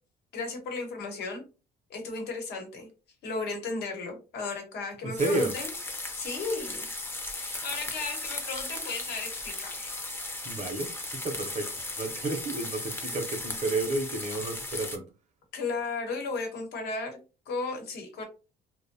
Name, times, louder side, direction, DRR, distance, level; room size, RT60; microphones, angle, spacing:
voice 1, 0.3-1.4 1.9-2.9 3.2-5.7 6.2-6.9 7.3-10.0 10.3-10.4 15.5-17.2 17.5-18.2, left 3 dB, 75° left, 0.9 m, -35 dB
voice 2, 5.0-5.5 10.4-10.9 11.2-11.7 12.0-15.0, right 2 dB, 45° right, 0.6 m, -31 dB
Frying Bacon (Rain), 5.2-15.0, left 2 dB, 15° left, 0.5 m, -36 dB
2.5 x 2.1 x 2.6 m
cardioid pair, 110°, 17 cm